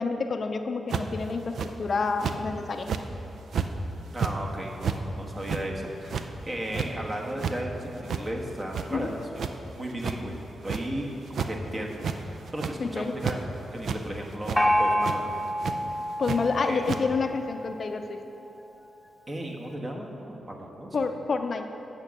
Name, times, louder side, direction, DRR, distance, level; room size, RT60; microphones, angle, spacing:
voice 1, 0.0-2.9 8.9-9.1 12.8-13.1 16.2-18.2 20.9-21.7, left 4 dB, 50° left, 6 dB, 0.5 m, -28 dB
sound 1, 0.9-1.2 1.6-1.7 2.2-2.4 2.8-3.1 3.5-3.7 4.1-4.3 4.8-5.0 5.4-5.6 6.0-6.3 6.7-6.9 7.3-7.6 8.1-8.2 8.6-9.1 9.4-9.5 10.0-10.2 10.7-10.8 11.3-11.5 11.9-12.2 12.5-12.8 13.2-13.4 13.8-14.0 14.4-14.6 15.0-15.2 15.6-15.7 16.2-16.4 16.9-17.0, right 6 dB, 70° right, 0.5 m, -30 dB
voice 2, 4.1-9.4 9.7-13.4 13.7-15.3 16.6-16.8 19.3-21.0, right 1 dB, 30° right, 0 dB, 1.2 m, -35 dB
Gong, 14.6-18.1, equal, 5° left, 0.7 m, -28 dB
8.9 x 5.2 x 7.3 m, 2.9 s
cardioid pair, 95°, 0 cm